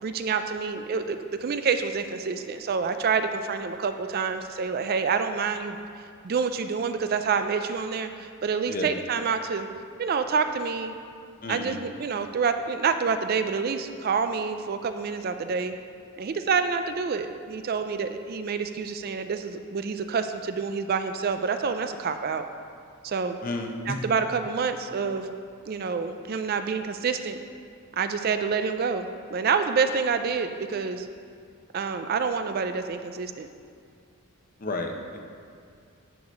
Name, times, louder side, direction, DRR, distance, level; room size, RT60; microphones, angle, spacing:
voice 1, 0.0-5.8 6.2-9.7 10.0-10.9 11.5-15.8 16.2-22.5 23.0-23.4 23.9-25.3 25.7-27.4 27.9-31.1 31.7-33.5, right 5 dB, 45° right, 8 dB, 0.4 m, -27 dB
voice 2, 11.4-11.8 23.4-24.0 34.6-35.2, left 2 dB, 40° left, 3 dB, 0.8 m, -32 dB
11.0 x 4.8 x 5.3 m, 2.3 s
head